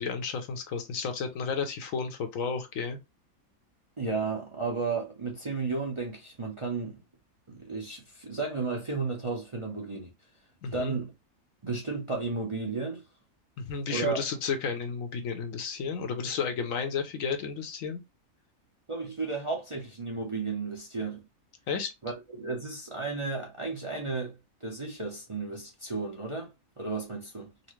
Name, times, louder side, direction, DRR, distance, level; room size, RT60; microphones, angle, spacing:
voice 1, 0.0-3.0 10.6-11.0 13.6-18.0 21.7-21.9, left 5 dB, 70° left, 1.1 m, -32 dB
voice 2, 4.0-7.0 7.5-10.1 10.7-11.1 11.6-13.0 13.9-14.2 18.9-21.2 22.0-27.5, right 4 dB, 30° right, 0.6 m, -33 dB
4.1 x 2.1 x 3.1 m
omnidirectional pair, 1.5 m